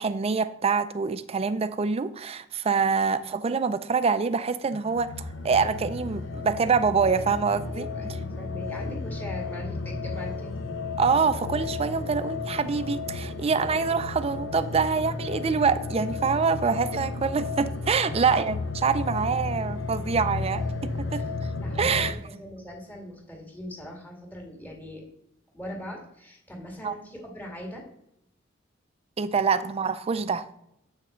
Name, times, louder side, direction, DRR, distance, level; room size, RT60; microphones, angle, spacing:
voice 1, 0.0-7.9 11.0-21.3 21.8-22.2 26.8-26.9 29.2-30.4, right 5 dB, 30° right, 14 dB, 0.4 m, -25 dB
sound 1, 4.7-22.1, left 3 dB, 75° left, 0.8 m, -33 dB
voice 2, 7.7-10.5 16.6-16.7 21.1-21.3 21.6-25.0 25.5-27.8 29.5-29.6, equal, 10° left, 0 dB, 2.2 m, -41 dB
8.1 x 6.1 x 4.4 m, 0.80 s
head